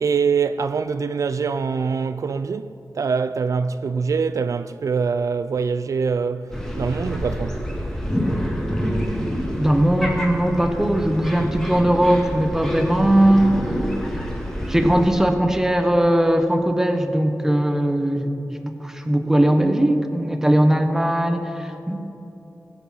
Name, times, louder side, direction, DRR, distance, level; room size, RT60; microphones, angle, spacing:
voice 1, 0.0-7.6, right 5 dB, 65° right, 0.4 m, -24 dB
sound 1, 6.5-15.1, equal, 10° left, 2.0 m, -27 dB
voice 2, 9.6-13.6 14.7-22.0, right 1 dB, 10° right, 1.0 m, -19 dB
19.5 x 8.3 x 5.7 m
wide cardioid pair, 120°, 6 cm